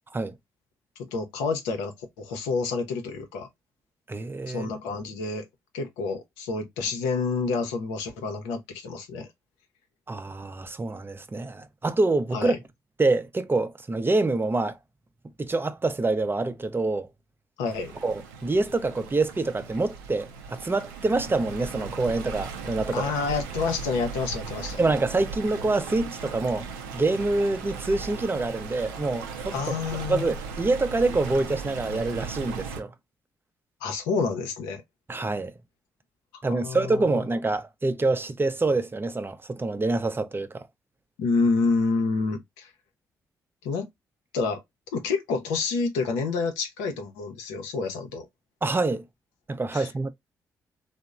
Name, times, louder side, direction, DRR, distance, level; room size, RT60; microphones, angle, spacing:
voice 1, 1.1-3.5 4.5-5.4 5.7-9.3 12.3-12.6 17.6-17.9 22.9-24.8 29.5-30.3 33.8-34.8 36.3-37.2 41.2-42.7 43.6-43.9 44.3-44.6 44.9-48.3 49.7-49.9, left 4 dB, 80° left, 0.6 m, -28 dB
voice 2, 4.1-4.7 10.1-12.6 13.0-14.8 15.4-17.1 18.0-23.1 24.8-26.7 26.9-29.7 30.1-32.9 35.1-35.5 36.4-40.7 48.6-49.0 49.5-50.1, right 3 dB, 25° right, 0.5 m, -26 dB
Stream, 17.7-32.8, right 5 dB, 85° right, 0.4 m, -37 dB
2.9 x 2.0 x 2.3 m
hypercardioid pair, 40°, 9 cm